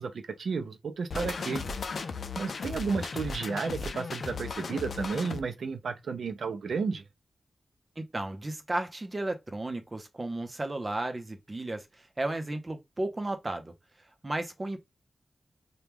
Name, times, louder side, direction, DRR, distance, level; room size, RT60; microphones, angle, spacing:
voice 1, 0.0-1.6 2.4-7.0, right 5 dB, 85° right, 0.4 m, -32 dB
sound 1, 1.1-5.4, left 4 dB, 70° left, 0.4 m, -36 dB
voice 2, 8.0-11.9 12.2-13.7 14.2-14.8, right 2 dB, 25° right, 0.6 m, -34 dB
3.0 x 2.2 x 3.5 m
wide cardioid pair, 130°, 0 cm